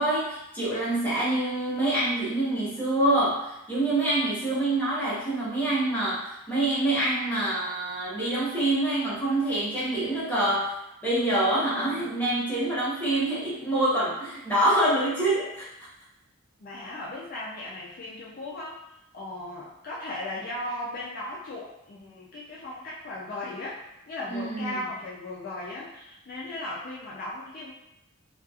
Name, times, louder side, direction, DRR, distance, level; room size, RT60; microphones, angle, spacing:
voice 1, 0.0-10.7 11.0-15.7 24.3-24.8, right 1 dB, 10° left, -9 dB, 0.8 m, -26 dB
voice 2, 11.5-12.1 13.2-13.7 16.6-18.8 19.1-23.8 24.1-27.7, left 2 dB, 40° left, -7 dB, 0.4 m, -37 dB
2.8 x 2.3 x 2.3 m, 0.88 s
head